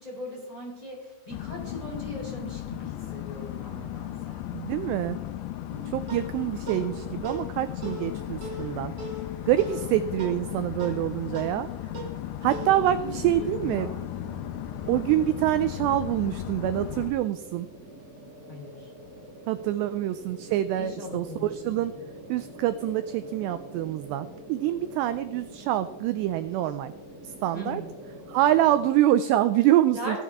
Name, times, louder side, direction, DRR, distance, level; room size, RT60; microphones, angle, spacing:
voice 1, 0.0-4.4 13.1-14.0 18.5-18.9 20.7-22.0 27.5-27.9 29.9-30.2, equal, 10° left, -4 dB, 2.8 m, -39 dB
sound 1, 1.3-17.1, left 12 dB, 85° left, 2.9 m, -36 dB
voice 2, 4.5-5.2 5.9-8.9 9.5-11.7 12.4-13.9 14.9-17.7 19.5-21.9 22.3-26.9 27.2-27.8 28.3-30.2, right 13 dB, 85° right, 12 dB, 2.4 m, -26 dB
sound 2, 5.7-14.4, right 1 dB, 60° right, 1.1 m, -41 dB
sound 3, 12.5-28.8, equal, 30° right, 2.0 m, -46 dB
15.0 x 12.0 x 3.6 m, 1.1 s
omnidirectional pair, 5.4 m